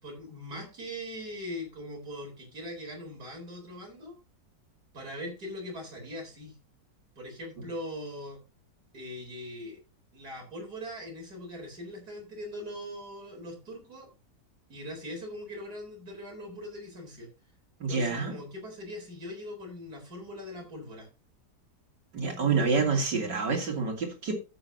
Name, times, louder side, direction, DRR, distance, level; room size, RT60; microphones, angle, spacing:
voice 1, 0.0-4.2 4.9-6.6 7.2-8.4 8.9-9.8 10.1-14.1 14.7-17.3 17.9-21.1, left 1 dB, 60° right, 1 dB, 4.7 m, -41 dB
voice 2, 17.8-18.4 22.1-24.4, right 4 dB, 80° right, 2 dB, 3.5 m, -27 dB
12.5 x 8.6 x 2.8 m, 0.29 s
omnidirectional pair, 1.9 m